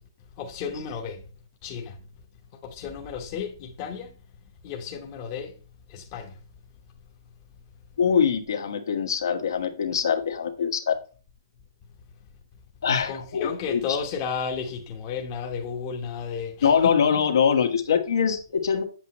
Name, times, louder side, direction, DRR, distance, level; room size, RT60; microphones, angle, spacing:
voice 1, 0.4-1.2 1.6-2.0 2.6-4.1 4.6-5.5 5.9-6.3 13.1-17.0, left 6 dB, 25° left, 1.1 m, -33 dB
voice 2, 8.0-10.9 12.8-13.8 16.6-18.8, left 7 dB, 75° left, 1.5 m, -23 dB
8.0 x 7.3 x 3.0 m
hypercardioid pair, 165°, 2 cm